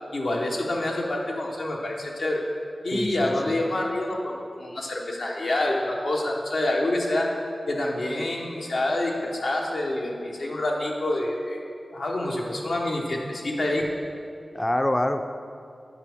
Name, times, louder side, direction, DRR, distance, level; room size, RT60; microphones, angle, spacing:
voice 1, 0.1-2.4 2.8-7.3 7.7-11.6 11.9-13.9, left 1 dB, 80° left, -2 dB, 1.1 m, -27 dB
voice 2, 2.9-3.6 14.5-15.3, left 1 dB, 20° left, 7 dB, 0.4 m, -26 dB
9.7 x 5.2 x 3.5 m, 2.4 s
cardioid pair, 45°, 0 cm